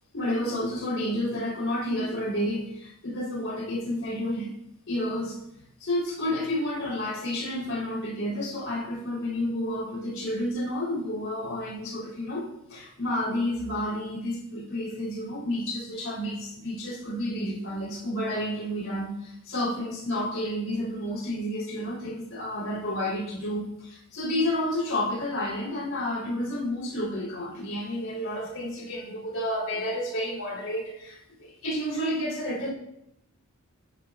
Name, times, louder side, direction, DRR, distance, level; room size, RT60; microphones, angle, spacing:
voice 1, 0.1-4.5 4.9-5.4 5.8-32.7, left 1 dB, 65° left, -2 dB, 3.9 m, -30 dB
27.0 x 11.0 x 2.5 m, 0.83 s
head